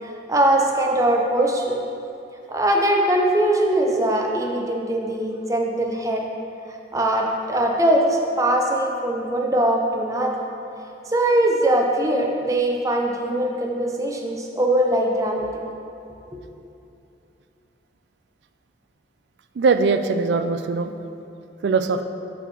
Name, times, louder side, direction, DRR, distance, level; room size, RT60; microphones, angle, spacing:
voice 1, 0.0-1.8 2.5-6.2 6.9-10.4 11.1-15.5, right 1 dB, 20° right, 0 dB, 0.6 m, -21 dB
voice 2, 19.6-20.9 21.6-22.0, right 4 dB, 70° right, 9 dB, 0.3 m, -21 dB
5.5 x 4.3 x 5.9 m, 2.7 s
head